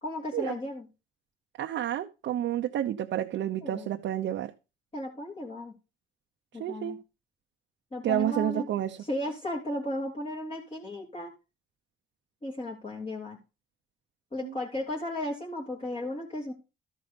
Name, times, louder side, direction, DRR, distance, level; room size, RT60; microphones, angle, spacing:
voice 1, 0.0-0.8 3.6-3.9 4.9-5.7 6.5-7.0 7.9-8.7 9.1-11.3 12.4-13.4 14.3-16.5, left 1 dB, 30° left, -4 dB, 2.8 m, -35 dB
voice 2, 1.6-4.5 6.5-7.0 8.0-9.0 14.4-14.5, right 11 dB, 70° right, 3 dB, 0.8 m, -30 dB
13.0 x 5.4 x 5.2 m, 0.30 s
cardioid pair, 90°, 20 cm